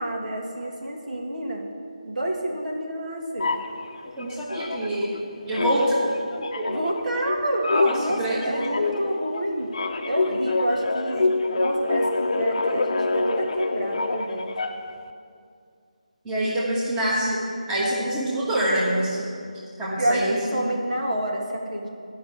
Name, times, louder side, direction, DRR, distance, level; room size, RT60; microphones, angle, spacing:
voice 1, 0.0-1.7 2.0-3.6 6.7-9.7 10.0-14.5 20.0-21.9, right 1 dB, 85° right, -1 dB, 2.0 m, -28 dB
sound 1, 3.4-5.2 5.5-15.0, left 3 dB, 50° left, 0.6 m, -27 dB
voice 2, 4.2-5.1 5.4-6.0 6.4-6.7 7.9-8.7 16.2-17.4 17.7-19.2 19.8-20.6, right 1 dB, 10° right, -7 dB, 1.3 m, -25 dB
10.5 x 5.5 x 8.2 m, 2.3 s
figure-of-eight pair, 165°, 4 cm